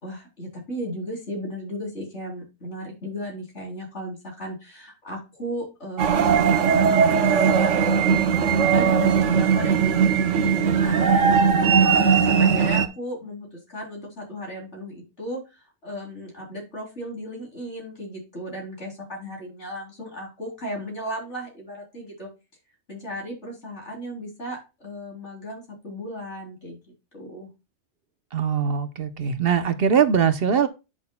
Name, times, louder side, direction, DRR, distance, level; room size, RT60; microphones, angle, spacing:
voice 1, 0.0-7.0 7.3-22.3 22.9-26.8 27.1-27.5, equal, 70° left, 4.0 m, -35 dB
sound 1, 6.0-12.9, right 6 dB, 80° right, 1.2 m, -19 dB
voice 2, 28.3-30.7, right 7 dB, 55° right, 1.0 m, -21 dB
10.0 x 6.3 x 2.3 m
omnidirectional pair, 1.2 m